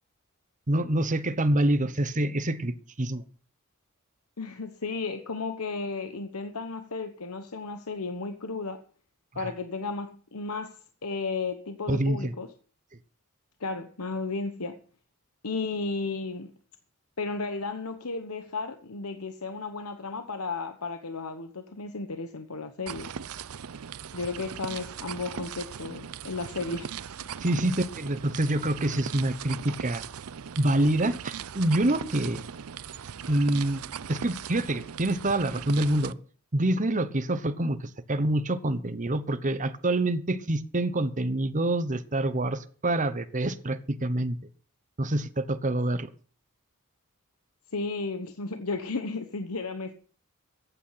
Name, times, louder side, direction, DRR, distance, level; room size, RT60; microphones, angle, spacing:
voice 1, 0.7-3.2 9.3-9.5 11.9-12.3 27.4-30.0 30.6-32.4 33.3-36.2 36.5-44.4 45.0-46.1, right 1 dB, 35° right, 1.1 m, -26 dB
voice 2, 4.4-8.8 9.3-12.5 13.6-14.8 15.4-16.5 17.2-23.1 24.1-26.9 27.3-27.4 47.7-49.9, left 3 dB, 80° left, 1.1 m, -34 dB
sound 1, 22.9-36.1, right 7 dB, 75° right, 0.6 m, -39 dB
14.5 x 9.2 x 5.8 m
head